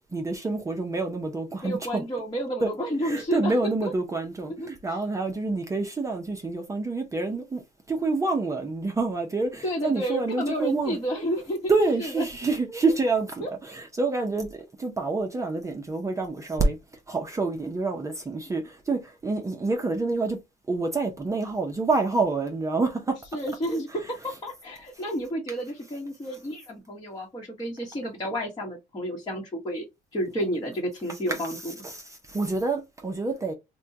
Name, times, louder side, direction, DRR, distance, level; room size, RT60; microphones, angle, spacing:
voice 1, 0.1-2.0 2.6-2.7 3.0-7.6 7.9-11.0 11.7-16.8 17.1-20.4 20.7-23.2 31.1-33.5, right 3 dB, 20° right, 0.6 m, -27 dB
voice 2, 1.6-3.5 3.8-3.9 4.6-4.7 9.6-11.7 12.0-12.2 12.7-12.8 13.4-13.5 23.3-29.8 30.1-31.6, equal, 25° left, 1.1 m, -31 dB
3.4 x 2.2 x 2.6 m
cardioid pair, 110°, 17 cm